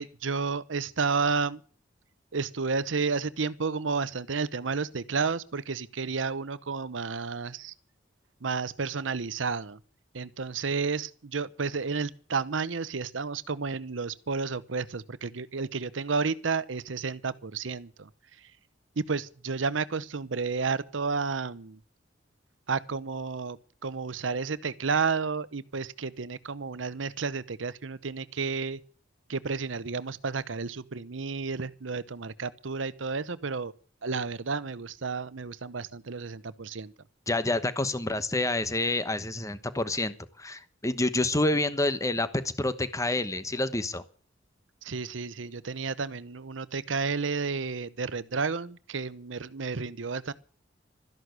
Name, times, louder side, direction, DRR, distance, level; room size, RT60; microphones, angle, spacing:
voice 1, 0.0-1.6 2.3-7.7 8.4-9.8 10.1-18.5 19.0-21.8 22.7-28.8 29.3-33.7 34.0-36.9 44.8-50.3, right 4 dB, 80° right, 0.8 m, -31 dB
voice 2, 37.3-42.3 42.6-44.0, left 2 dB, 15° left, 1.1 m, -28 dB
13.5 x 11.0 x 8.0 m
head